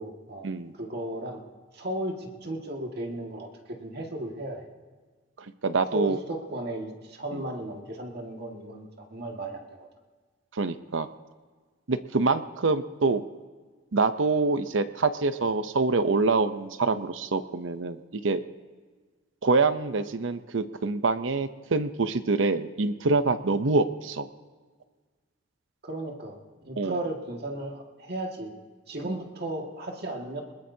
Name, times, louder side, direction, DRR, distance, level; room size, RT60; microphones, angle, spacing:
voice 1, 0.0-1.4 1.7-4.7 5.9-9.9 25.8-26.4 26.6-28.5 28.9-30.4, right 1 dB, 60° right, 1 dB, 2.0 m, -35 dB
voice 2, 5.6-6.2 7.3-7.4 10.5-11.1 11.9-13.2 13.9-18.4 19.4-24.3 26.8-27.0 29.0-29.1, right 3 dB, 90° right, 11 dB, 0.7 m, -25 dB
21.5 x 20.5 x 2.8 m, 1.5 s
head